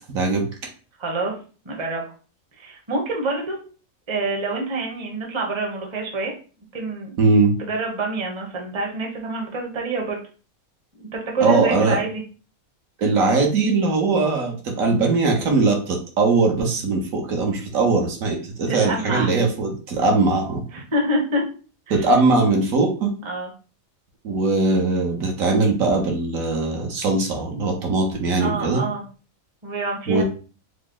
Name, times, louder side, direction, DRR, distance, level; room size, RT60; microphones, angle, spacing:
voice 1, 0.1-0.5 7.2-7.5 11.4-12.0 13.0-20.6 21.9-23.1 24.2-28.8 30.1-30.2, right 3 dB, 70° right, 2 dB, 1.2 m, -20 dB
voice 2, 1.0-1.3 1.6-2.0 2.6-3.6 4.1-6.3 6.7-7.1 7.7-10.2 11.1-12.2 18.7-19.3 20.7-21.4 21.9-22.1 23.2-23.5 28.4-29.0 29.6-30.2, right 2 dB, 25° right, 0 dB, 0.7 m, -26 dB
3.8 x 2.0 x 3.7 m, 0.37 s
omnidirectional pair, 1.5 m